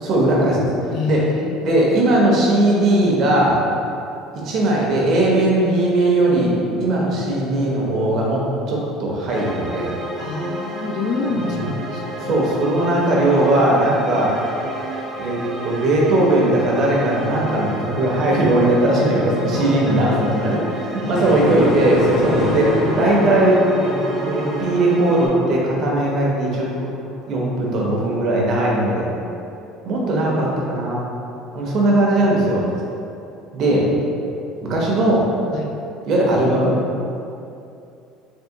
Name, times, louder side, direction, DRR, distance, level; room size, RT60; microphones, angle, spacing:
voice 1, 0.0-0.7 1.1-1.2 1.6-3.6 4.4-6.5 6.8-8.4 8.7-9.9 11.4-11.6 12.2-14.3 15.2-26.7 27.3-29.1 29.8-31.1 31.5-32.6 33.5-33.8 34.6-35.2 36.1-36.7, right 1 dB, 50° right, -3 dB, 0.7 m, -18 dB
voice 2, 0.9-1.8 6.7-7.0 10.2-12.4 19.5-20.6 21.0-21.3 35.5-35.7, left 3 dB, 55° left, 1 dB, 0.4 m, -27 dB
sound 1, 9.3-25.3, right 1 dB, 5° right, 0.5 m, -31 dB
sound 2, 21.1-27.1, left 1 dB, 35° left, 0.8 m, -26 dB
3.6 x 2.8 x 2.8 m, 2.7 s
cardioid pair, 145°, 0 cm